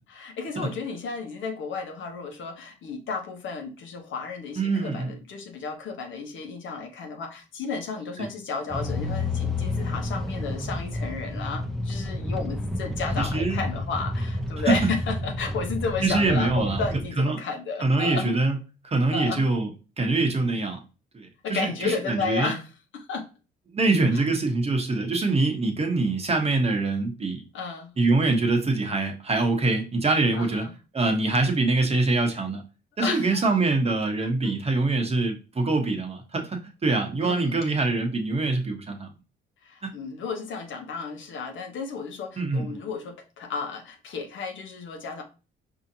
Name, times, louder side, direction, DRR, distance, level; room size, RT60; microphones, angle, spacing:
voice 1, 0.1-18.3 19.1-19.5 21.4-22.6 22.9-23.3 27.5-27.9 30.4-30.7 33.0-33.5 34.2-34.5 37.2-37.6 39.6-45.2, left 4 dB, 75° left, 1.0 m, -33 dB
voice 2, 4.6-5.1 8.2-8.3 13.2-13.6 14.6-14.8 16.0-16.8 17.2-17.4 17.8-18.6 18.8-19.7 20.0-20.8 21.1-22.5 23.7-27.4 28.0-30.7 30.9-32.6 33.0-39.1 39.8-39.9 42.4-42.8, right 3 dB, 30° right, 1.0 m, -24 dB
sound 1, 8.7-17.0, left 2 dB, ahead, 0.7 m, -30 dB
4.9 x 2.7 x 2.7 m
cardioid pair, 90°, 20 cm